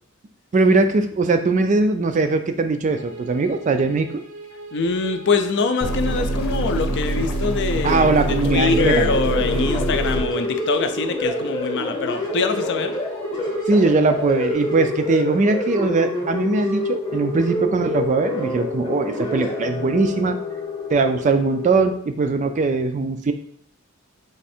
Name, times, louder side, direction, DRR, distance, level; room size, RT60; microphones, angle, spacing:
voice 1, 0.5-4.1 7.8-9.1 13.7-20.4 20.9-23.3, right 3 dB, 35° right, 8 dB, 0.3 m, -20 dB
sound 1, 2.9-14.5, right 2 dB, 65° right, 0.6 m, -40 dB
voice 2, 4.7-12.9, left 4 dB, 55° left, 7 dB, 0.5 m, -23 dB
sound 2, 5.8-10.2, right 1 dB, 85° left, 0.8 m, -24 dB
sound 3, 8.2-21.9, left 2 dB, 20° left, 0.8 m, -27 dB
3.5 x 3.2 x 4.3 m, 0.63 s
head